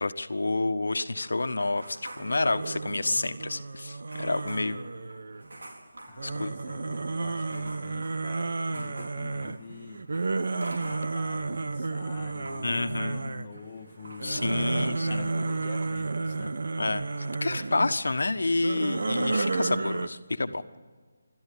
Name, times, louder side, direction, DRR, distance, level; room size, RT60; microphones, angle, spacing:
voice 1, 0.0-4.8 6.2-6.5 12.6-13.3 14.2-15.3 16.8-20.6, left 2 dB, 85° left, 10 dB, 1.4 m, -29 dB
sound 1, 1.2-3.3 3.5-3.6 4.1-11.5 11.8-16.1 16.4-16.7, right 1 dB, 85° right, 4.4 m, -49 dB
sound 2, 2.2-5.6 6.2-13.6 14.0-17.9 18.5-20.1, right 3 dB, 65° right, 1.3 m, -32 dB
voice 2, 6.1-10.0 10.8-16.8 17.5-17.6, left 5 dB, 25° left, -3 dB, 1.5 m, -46 dB
27.0 x 13.5 x 8.5 m, 1.5 s
figure-of-eight pair, 170°, 0 cm